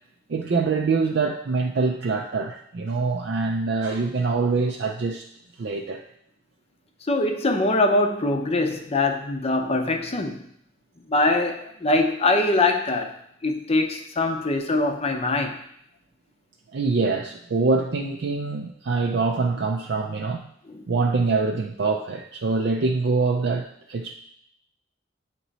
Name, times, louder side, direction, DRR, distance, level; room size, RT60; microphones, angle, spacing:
voice 1, 0.3-5.3 5.6-6.0 16.7-20.4 20.9-24.1, right 4 dB, 60° right, 2 dB, 0.4 m, -24 dB
voice 2, 7.1-10.4 11.1-13.1 13.4-15.6 20.7-20.9, left 2 dB, 30° left, 4 dB, 0.6 m, -23 dB
8.7 x 3.0 x 4.0 m, 0.71 s
head